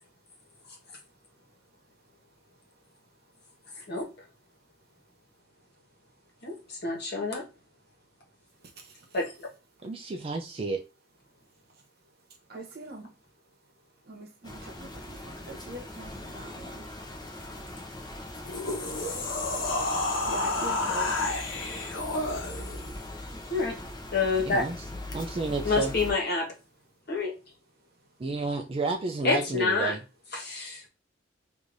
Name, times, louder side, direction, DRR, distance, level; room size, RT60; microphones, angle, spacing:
voice 1, 6.4-7.4 9.1-9.5 23.5-23.7 24.1-24.6 25.6-26.5 27.1-27.3 29.2-29.9 30.3-30.9, left 4 dB, 55° left, 1.3 m, -27 dB
voice 2, 9.8-10.8 24.4-24.8 25.1-26.0 28.2-30.0, right 3 dB, 30° right, 0.4 m, -31 dB
voice 3, 12.5-13.1 14.1-16.9 20.3-21.2, right 2 dB, 55° right, 1.1 m, -42 dB
sound 1, 14.4-26.1, left 1 dB, 20° left, 0.8 m, -40 dB
sound 2, 18.3-22.9, left 2 dB, 85° left, 1.0 m, -30 dB
4.7 x 2.7 x 2.5 m
head